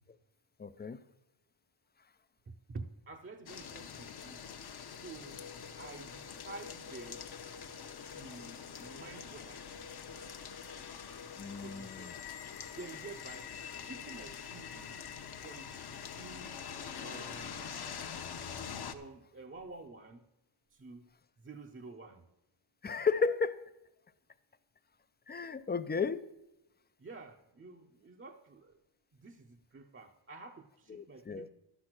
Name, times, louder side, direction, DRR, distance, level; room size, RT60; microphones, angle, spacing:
voice 1, 0.6-1.0 4.8-4.9 11.4-12.1 22.8-23.7 25.3-26.3 30.9-31.5, left 5 dB, 20° left, 14 dB, 0.4 m, -34 dB
voice 2, 2.5-4.4 4.9-5.4 5.8-7.2 8.0-9.8 11.6-12.1 12.8-15.0 15.4-15.7 16.2-16.7 17.0-18.3 18.9-20.2 20.7-21.1 21.4-22.3 27.0-28.8 29.2-31.5, right 3 dB, 25° right, 3 dB, 0.6 m, -50 dB
sound 1, 3.5-18.9, left 7 dB, 50° left, 0.9 m, -45 dB
11.5 x 8.0 x 6.0 m, 0.94 s
wide cardioid pair, 120°, 50 cm